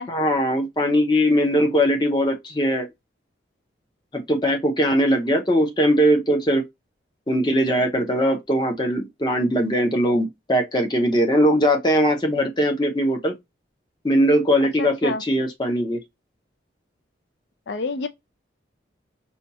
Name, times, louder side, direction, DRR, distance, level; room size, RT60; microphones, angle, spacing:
voice 1, 0.1-2.9 4.1-6.6 7.3-13.3 14.0-16.0, equal, 25° left, 0.7 m, -20 dB
voice 2, 14.8-15.2 17.7-18.1, left 3 dB, 65° left, 0.4 m, -28 dB
4.3 x 2.3 x 2.7 m
head